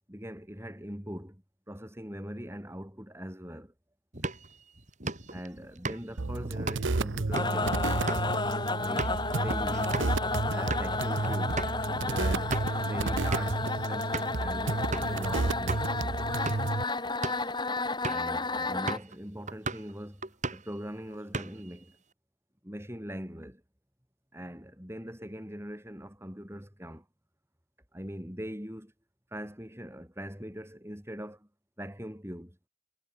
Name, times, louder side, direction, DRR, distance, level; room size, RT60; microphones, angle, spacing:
voice 1, 0.1-3.7 5.3-7.8 8.8-10.2 10.5-11.7 12.0-16.3 18.1-22.0 22.6-23.6 24.3-27.0 27.9-28.9 29.3-31.5 31.8-32.6, equal, 15° right, 6.8 m, -41 dB
sound 1, 4.1-10.2 10.6-10.9 11.2-11.3 11.6-11.8 12.3-12.8 13.3-13.6 14.1-14.4 14.9-15.2 15.7-15.9 16.3-16.7 17.1-17.5 18.0-18.3 18.9-19.2 19.5-19.9 20.2-20.8 21.1-21.8, right 3 dB, 35° right, 5.7 m, -36 dB
sound 2, 6.2-16.8, right 3 dB, 70° right, 0.9 m, -32 dB
sound 3, 7.3-19.0, left 3 dB, 20° left, 5.1 m, -32 dB
head